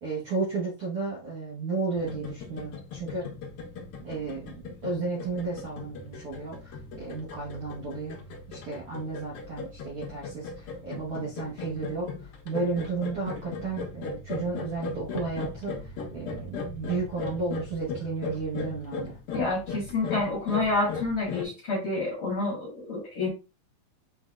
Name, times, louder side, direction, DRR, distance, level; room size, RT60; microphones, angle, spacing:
voice 1, 0.0-3.3 4.0-8.2 8.5-12.1 12.4-19.2, right 4 dB, 55° right, -5 dB, 1.6 m, -33 dB
sound 1, 1.9-21.4, left 4 dB, 70° left, 1.4 m, -38 dB
voice 2, 19.3-23.3, left 3 dB, 45° left, -3 dB, 1.9 m, -28 dB
6.1 x 3.5 x 2.3 m, 0.30 s
omnidirectional pair, 3.9 m